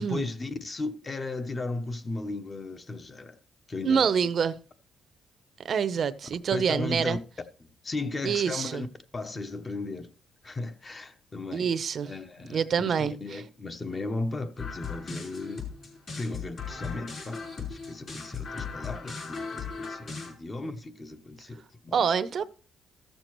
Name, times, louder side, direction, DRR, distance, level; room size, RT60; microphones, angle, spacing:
voice 1, 0.0-3.4 3.7-4.1 6.5-7.2 7.6-8.9 9.1-10.1 10.4-11.7 12.0-15.7 16.1-22.0, left 3 dB, 30° left, 0.9 m, -36 dB
voice 2, 3.8-4.6 5.6-7.2 8.2-8.8 11.5-12.1 12.5-13.4 21.9-22.4, right 7 dB, 55° right, 0.6 m, -26 dB
sound 1, 14.6-20.3, left 5 dB, 45° left, 4.6 m, -37 dB
14.5 x 6.7 x 3.1 m
cardioid pair, 90°, 0 cm